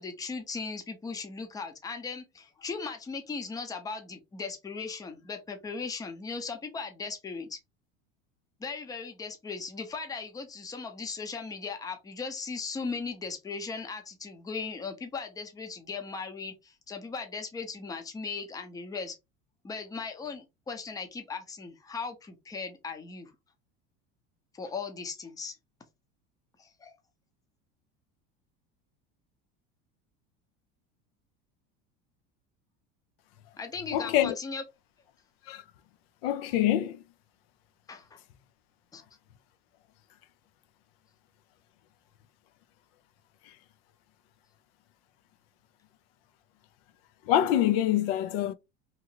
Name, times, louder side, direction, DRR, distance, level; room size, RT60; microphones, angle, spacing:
voice 1, 0.0-7.6 8.6-19.2 19.6-23.3 24.5-25.5 26.6-26.9 33.6-34.6 37.9-38.2 38.9-39.0, left 4 dB, 10° left, 0.5 m, -38 dB
voice 2, 33.9-34.3 35.5-35.6 36.2-37.0 47.3-48.5, left 12 dB, 85° left, 0.5 m, -25 dB
2.9 x 2.4 x 2.8 m
supercardioid pair, 135°, 29 cm